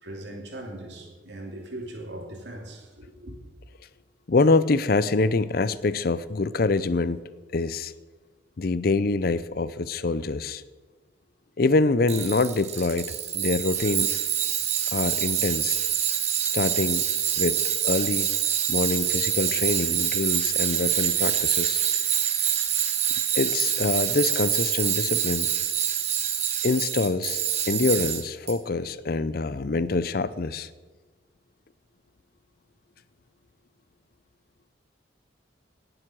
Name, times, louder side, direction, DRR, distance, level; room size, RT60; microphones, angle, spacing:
voice 1, 0.0-3.4, right 1 dB, 65° right, 2.8 m, -39 dB
voice 2, 4.3-7.2 7.5-7.9 8.6-10.6 11.6-14.1 14.9-15.8 16.5-17.0 17.4-17.6 17.8-18.3 18.7-21.8 23.3-25.5 26.6-27.4 27.7-30.7, left 3 dB, 50° left, 0.5 m, -25 dB
Tools, 12.1-28.5, right 9 dB, 35° right, 1.1 m, -26 dB
18.0 x 7.8 x 6.2 m
head